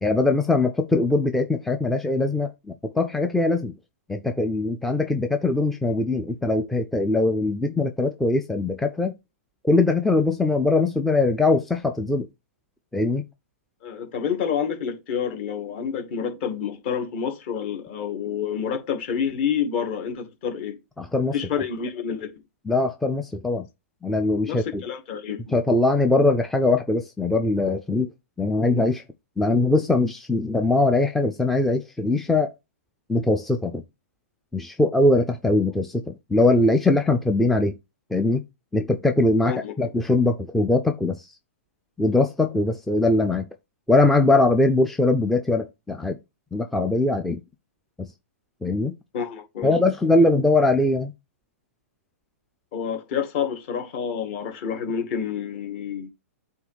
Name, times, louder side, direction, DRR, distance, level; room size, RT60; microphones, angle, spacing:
voice 1, 0.0-3.7 4.1-9.1 9.6-12.3 12.9-13.2 21.0-21.3 22.7-23.7 24.0-24.8 25.5-28.1 28.4-29.0 29.4-32.5 33.1-33.8 34.5-37.7 38.1-38.4 38.7-41.3 42.0-43.5 43.9-46.2 46.5-47.4 48.0-48.1 48.6-49.0 49.6-51.1, left 2 dB, 5° left, 0.4 m, -21 dB
voice 2, 13.8-20.8 21.3-22.3 24.5-25.5 39.5-39.7 49.1-49.8 52.7-56.1, left 7 dB, 45° left, 2.2 m, -28 dB
8.0 x 3.1 x 4.9 m
hypercardioid pair, 145°, 8 cm